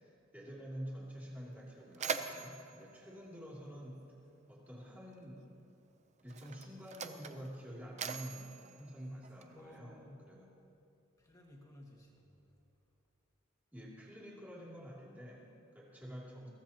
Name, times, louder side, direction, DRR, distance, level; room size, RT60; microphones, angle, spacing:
voice 1, 0.0-4.0 4.5-5.6 6.2-10.5 13.7-16.5, equal, 10° right, -6 dB, 2.8 m, -48 dB
Mechanisms, 1.0-1.1 1.5-4.2 5.2-5.4 6.2-9.8, right 5 dB, 35° right, 0.6 m, -43 dB
voice 2, 9.5-10.3 11.2-12.6, left 1 dB, 15° left, -2 dB, 2.0 m, -57 dB
22.0 x 16.0 x 2.9 m, 2.8 s
head